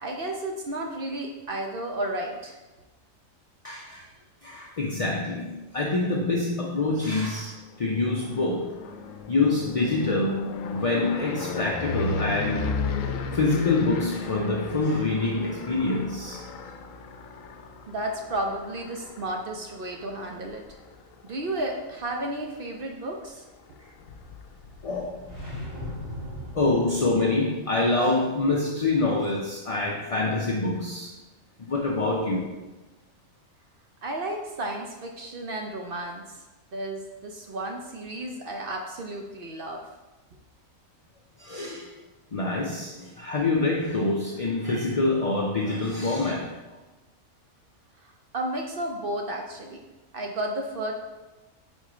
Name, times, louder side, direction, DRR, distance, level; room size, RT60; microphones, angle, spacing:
voice 1, 0.0-2.6 17.9-20.6 21.2-23.4 23.8-23.9 34.0-36.2 36.7-39.8 48.3-49.8 50.1-50.9, right 1 dB, 55° right, 2 dB, 0.7 m, -32 dB
voice 2, 3.6-4.1 4.4-8.7 9.3-12.7 13.3-16.4 24.8-25.3 26.5-31.1 31.6-32.5 41.4-41.9 42.3-46.5, left 2 dB, 45° left, -2 dB, 0.4 m, -26 dB
sound 1, 7.8-21.8 22.3-22.7 23.0-23.1 23.4-23.5 23.6-26.4, left 4 dB, 80° left, 1.0 m, -35 dB
sound 2, 25.2-27.4, equal, 15° right, 2.1 m, -38 dB
4.8 x 4.3 x 4.9 m, 1.1 s
omnidirectional pair, 1.4 m